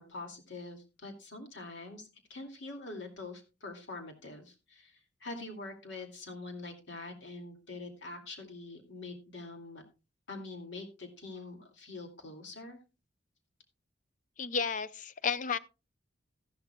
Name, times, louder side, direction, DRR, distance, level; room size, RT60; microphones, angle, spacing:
voice 1, 0.0-9.8 10.3-12.8, left 2 dB, 70° left, 2.4 m, -45 dB
voice 2, 14.4-15.6, left 6 dB, 40° left, 0.5 m, -32 dB
14.0 x 11.5 x 2.3 m
head